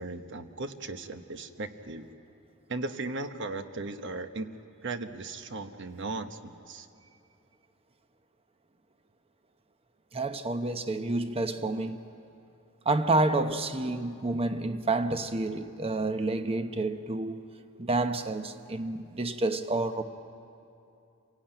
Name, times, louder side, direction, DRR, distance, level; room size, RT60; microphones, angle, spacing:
voice 1, 0.0-2.1 2.7-4.5 4.8-6.9, right 3 dB, 60° right, 1.1 m, -37 dB
voice 2, 10.1-12.0 12.8-17.4 17.8-20.0, right 2 dB, 25° right, 0.9 m, -29 dB
27.5 x 17.5 x 9.0 m
head